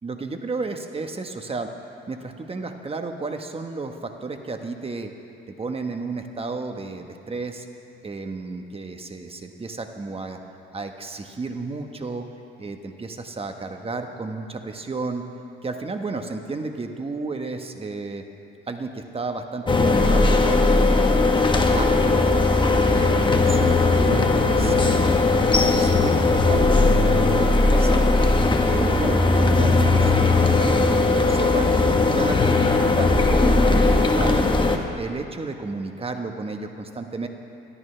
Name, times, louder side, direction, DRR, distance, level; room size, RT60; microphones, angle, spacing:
voice 1, 0.0-1.7 2.1-5.1 5.5-7.6 8.0-10.4 10.7-12.2 12.6-15.2 15.6-18.2 18.7-22.3 22.7-25.1 25.6-28.1 28.4-31.8 32.1-34.5 35.0-37.3, right 3 dB, 30° right, 5 dB, 1.2 m, -32 dB
sound 1, 19.7-34.8, left 3 dB, 25° left, 1.3 m, -18 dB
22.0 x 13.5 x 3.4 m, 2.6 s
cardioid pair, 90°, 20 cm